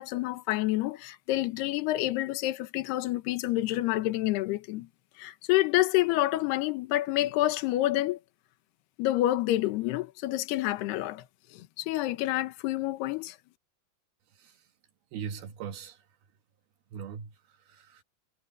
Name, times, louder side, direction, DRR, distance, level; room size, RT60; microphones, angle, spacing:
voice 1, 0.0-4.9 5.2-8.2 9.0-11.2 11.5-13.4, left 16 dB, 80° left, 3.1 m, -28 dB
voice 2, 14.3-14.7 15.1-16.1 16.9-18.0, right 7 dB, 70° right, 3.2 m, -41 dB
omnidirectional pair, 4.7 m